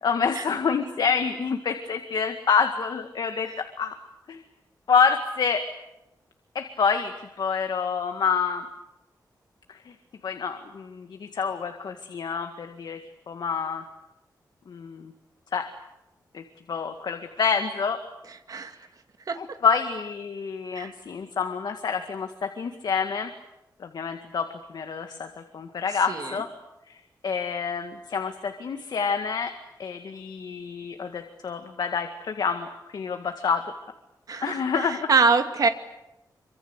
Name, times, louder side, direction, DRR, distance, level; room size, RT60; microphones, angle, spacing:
voice 1, 0.0-4.0 4.3-4.4 4.9-5.7 6.6-8.7 9.7-9.9 10.2-13.0 13.3-13.8 14.7-15.1 15.5-15.7 16.3-16.4 16.7-18.0 19.4-23.3 23.8-26.5 26.9-27.0 27.2-29.5 29.8-33.7 34.4-35.1, left 6 dB, 70° left, 6 dB, 1.9 m, -27 dB
voice 2, 34.3-35.7, right 4 dB, 55° right, 7 dB, 2.3 m, -24 dB
26.5 x 25.0 x 8.2 m, 0.92 s
wide cardioid pair, 130°, 7 cm